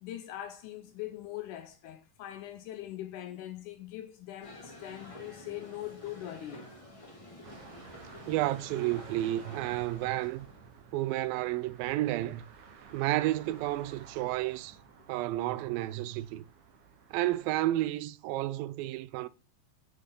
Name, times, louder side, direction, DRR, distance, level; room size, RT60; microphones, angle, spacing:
voice 1, 0.0-6.7, left 13 dB, 80° left, 1.9 m, -42 dB
sound 1, 4.4-10.6, left 1 dB, 25° left, 0.7 m, -49 dB
sound 2, 7.4-17.9, right 6 dB, 70° right, 2.2 m, -53 dB
voice 2, 8.3-10.5 10.9-12.4 12.9-14.8 15.1-16.4 17.1-19.3, right 15 dB, 90° right, 2.3 m, -31 dB
8.0 x 6.3 x 3.7 m
omnidirectional pair, 4.0 m